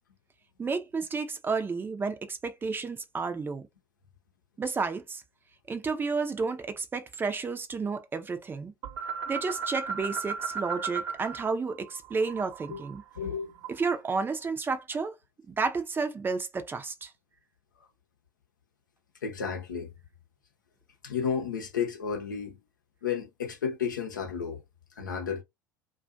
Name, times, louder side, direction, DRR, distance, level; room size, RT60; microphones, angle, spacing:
voice 1, 0.6-3.7 4.6-5.2 5.7-8.7 9.3-13.0 13.7-15.2 15.5-17.1, right 4 dB, 20° right, 0.5 m, -31 dB
sound 1, 8.8-11.4 11.7-14.0, right 5 dB, 50° right, 0.9 m, -36 dB
voice 2, 13.2-13.6 19.2-19.9 21.0-22.6 23.0-24.6 25.0-25.4, left 7 dB, 80° left, 0.7 m, -32 dB
2.4 x 2.3 x 2.5 m
figure-of-eight pair, 70°, 10 cm